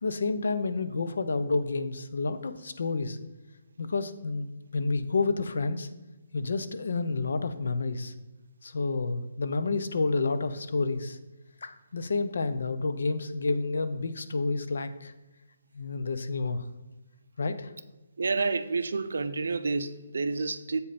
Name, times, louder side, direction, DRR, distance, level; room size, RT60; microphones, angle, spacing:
voice 1, 0.0-3.2 3.8-5.9 6.3-8.1 8.6-11.2 11.6-15.1 15.7-16.6 17.4-17.7, left 3 dB, 65° left, 0.6 m, -29 dB
voice 2, 18.2-20.8, right 4 dB, 70° right, 0.6 m, -29 dB
8.0 x 5.2 x 4.2 m
hypercardioid pair, 175°, 0 cm